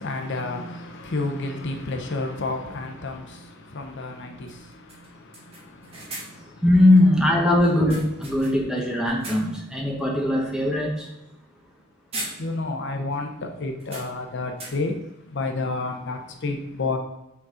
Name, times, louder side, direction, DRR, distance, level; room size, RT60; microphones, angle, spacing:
voice 1, 0.0-6.6 8.3-8.5 12.4-17.0, left 3 dB, 60° left, 0.7 m, -31 dB
sound 1, 1.3-1.4 3.5-3.6 3.9-4.0 4.5-4.6 4.9-6.6 7.6-8.7 9.0-9.7 10.1-10.3 11.6-11.8 12.1-12.9 13.1-13.2 13.8-15.1, right 1 dB, 30° right, 1.4 m, -40 dB
voice 2, 6.6-11.1, left 1 dB, 5° right, 1.0 m, -20 dB
5.9 x 4.2 x 3.8 m
head